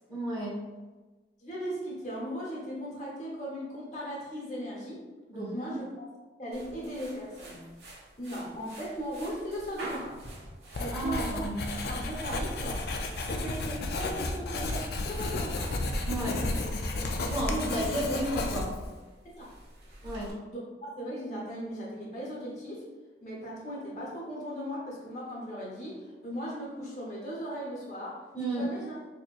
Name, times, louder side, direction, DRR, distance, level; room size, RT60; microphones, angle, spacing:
voice 1, 0.1-0.6 5.3-5.8 10.9-11.7 16.0-18.7 20.0-20.3 28.3-28.7, right 1 dB, 20° right, -7 dB, 1.3 m, -33 dB
voice 2, 1.4-5.9 6.4-7.7 8.2-10.2 10.8-11.5 11.8-12.8 13.3-15.7 16.3-16.6 17.5-17.9 19.2-19.5 20.5-22.9 23.2-28.9, equal, 40° left, -5 dB, 1.0 m, -38 dB
sound 1, 6.5-20.3, right 1 dB, 80° right, 1.3 m, -48 dB
Writing, 10.7-18.9, left 2 dB, 60° left, 0.4 m, -33 dB
4.4 x 2.9 x 2.4 m, 1.2 s
head